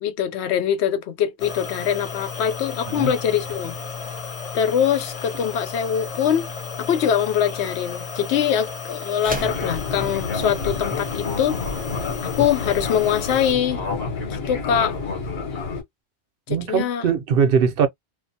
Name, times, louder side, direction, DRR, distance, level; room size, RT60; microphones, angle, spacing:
voice 1, 0.0-3.8 4.5-6.5 6.8-11.6 12.2-13.8 14.3-14.9 16.5-17.1, left 8 dB, 90° left, 0.8 m, -23 dB
sound 1, 1.4-13.5, left 6 dB, 50° left, 0.4 m, -34 dB
sound 2, 9.1-9.7, right 1 dB, 10° right, 0.5 m, -32 dB
Fixed-wing aircraft airplane, 9.3-15.8, left 4 dB, 70° left, 1.1 m, -29 dB
voice 2, 16.5-17.9, right 7 dB, 65° right, 0.7 m, -20 dB
2.4 x 2.1 x 2.6 m
omnidirectional pair, 1.1 m